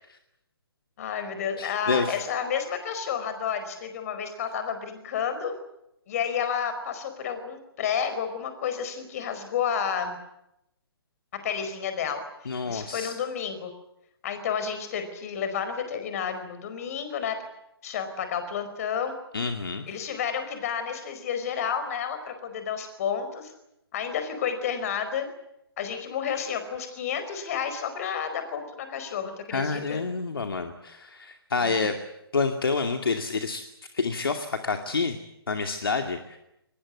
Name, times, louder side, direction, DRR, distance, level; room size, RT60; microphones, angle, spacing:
voice 1, 1.0-5.5 6.1-10.2 11.4-13.7 14.2-17.4 17.8-19.1 19.9-23.5 23.9-25.3 25.8-30.0 31.6-31.8, left 7 dB, 35° left, 9 dB, 4.8 m, -31 dB
voice 2, 1.6-2.2 12.5-13.1 19.3-19.8 29.5-32.1 32.3-33.7 33.9-35.2 35.5-36.4, left 4 dB, 65° left, 5 dB, 2.4 m, -28 dB
23.5 x 20.5 x 9.5 m, 0.84 s
figure-of-eight pair, 135°, 13 cm